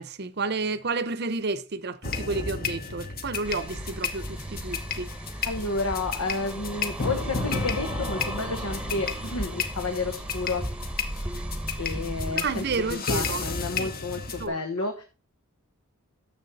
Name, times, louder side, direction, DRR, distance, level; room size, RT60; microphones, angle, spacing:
voice 1, 0.0-5.1 12.3-13.4 13.8-13.9 14.4-14.5, right 3 dB, 45° right, 0.7 m, -31 dB
sound 1, 2.0-14.5, left 4 dB, 40° left, 1.2 m, -32 dB
sound 2, 3.4-12.9, right 1 dB, 5° right, 1.0 m, -36 dB
voice 2, 5.5-10.7 11.8-15.0, left 3 dB, 85° left, 1.2 m, -31 dB
10.5 x 7.1 x 4.1 m
head